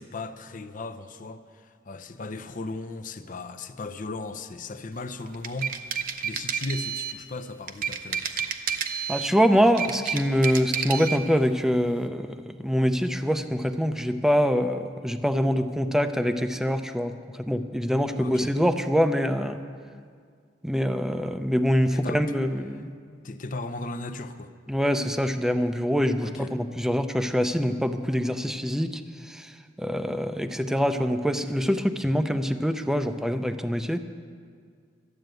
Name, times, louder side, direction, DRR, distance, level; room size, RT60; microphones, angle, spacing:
voice 1, 0.0-8.5 18.2-18.5 21.9-22.2 23.2-24.5 26.2-26.5, left 2 dB, 45° left, 9 dB, 0.6 m, -37 dB
sound 1, 5.3-7.2 7.7-9.4 9.7-11.2, right 7 dB, 50° right, 0.7 m, -30 dB
voice 2, 9.1-12.3 12.6-17.1 17.4-19.6 20.6-22.9 24.7-29.0 29.3-29.5 29.8-34.0, equal, 5° right, 8 dB, 0.5 m, -24 dB
12.5 x 7.9 x 9.1 m, 2.1 s
head